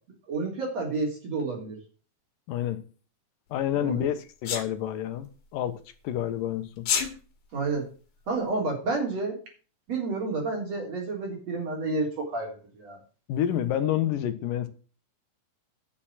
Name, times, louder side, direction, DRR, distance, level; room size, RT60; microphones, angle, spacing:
voice 1, 0.3-1.8 3.7-4.1 7.5-7.8 8.3-9.4 9.9-13.0, right 3 dB, 50° right, 4.6 m, -30 dB
voice 2, 2.5-2.8 3.5-6.9 13.3-14.7, left 11 dB, 80° left, 2.7 m, -29 dB
Sneeze, 4.5-4.7 6.8-7.1, left 7 dB, 65° left, 3.2 m, -26 dB
10.5 x 6.7 x 7.4 m
omnidirectional pair, 3.9 m